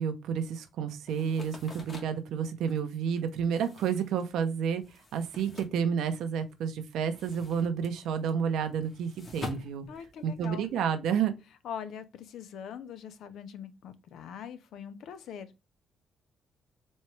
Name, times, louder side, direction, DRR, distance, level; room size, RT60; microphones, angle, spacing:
voice 1, 0.0-4.8 5.1-9.9 10.2-11.3, right 7 dB, 80° right, 0.8 m, -30 dB
sound 1, 1.1-6.5 6.8-10.7, left 2 dB, 40° left, 1.6 m, -46 dB
voice 2, 9.9-10.7 11.6-15.5, left 8 dB, 75° left, 0.6 m, -42 dB
4.3 x 3.2 x 3.2 m
cardioid pair, 90°, 0 cm